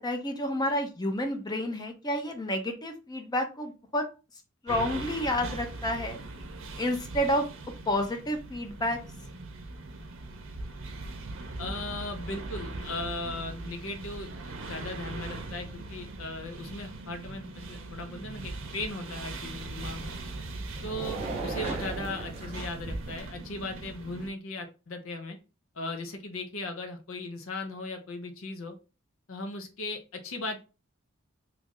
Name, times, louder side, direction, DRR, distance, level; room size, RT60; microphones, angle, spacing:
voice 1, 0.0-4.0 4.6-6.2 6.8-7.4 7.9-9.0, left 1 dB, 20° left, 5 dB, 0.6 m, -30 dB
sound 1, 4.7-24.3, right 2 dB, 65° right, 0.6 m, -40 dB
voice 2, 11.6-14.3 14.6-20.2 20.8-25.4 25.7-28.8 29.3-30.6, left 2 dB, 65° left, 5 dB, 0.7 m, -37 dB
sound 2, 19.5-23.3, right 3 dB, 30° right, 0.8 m, -38 dB
3.1 x 2.5 x 3.6 m, 0.31 s
head